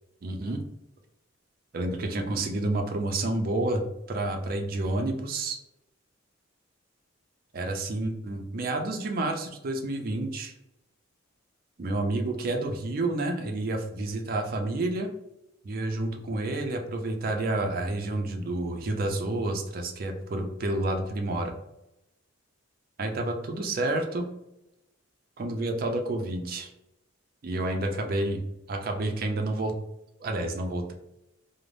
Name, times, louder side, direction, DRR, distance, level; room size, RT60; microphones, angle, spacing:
voice 1, 0.2-0.6 1.7-3.8 4.1-5.6 7.5-10.5 11.8-15.1 15.6-21.5 23.0-24.3 25.4-26.7 27.4-28.4 28.7-29.7 30.2-30.9, right 2 dB, 45° right, 4 dB, 0.4 m, -29 dB
2.5 x 2.0 x 3.1 m, 0.88 s
head